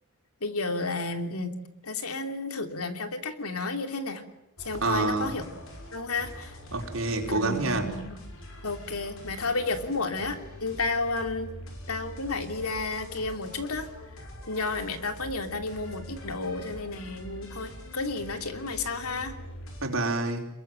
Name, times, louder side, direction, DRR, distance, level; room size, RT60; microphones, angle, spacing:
voice 1, 0.4-1.5 1.8-4.2 4.6-5.4 5.9-6.6 7.3-8.2 8.6-11.5 11.9-13.9 14.5-19.4, left 3 dB, 90° left, 7 dB, 2.9 m, -32 dB
sound 1, 4.6-19.9, left 1 dB, 65° left, 6.3 m, -44 dB
voice 2, 4.8-5.5 6.7-7.9 19.8-20.5, right 2 dB, 65° right, 2 dB, 4.6 m, -28 dB
27.0 x 22.5 x 9.1 m, 0.83 s
head